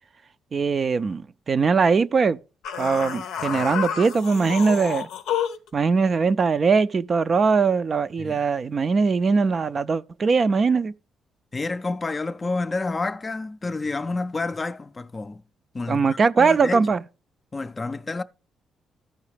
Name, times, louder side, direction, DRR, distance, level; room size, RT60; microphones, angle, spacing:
voice 1, 0.5-2.4 2.8-5.1 5.7-10.9 15.9-17.0, right 5 dB, 40° right, 0.3 m, -21 dB
sound 1, 2.6-5.7, left 8 dB, 85° left, 0.5 m, -29 dB
voice 2, 11.5-15.4 15.7-16.9 17.5-18.2, left 3 dB, 25° left, 0.4 m, -29 dB
14.0 x 4.8 x 3.3 m
cardioid pair, 90°, 0 cm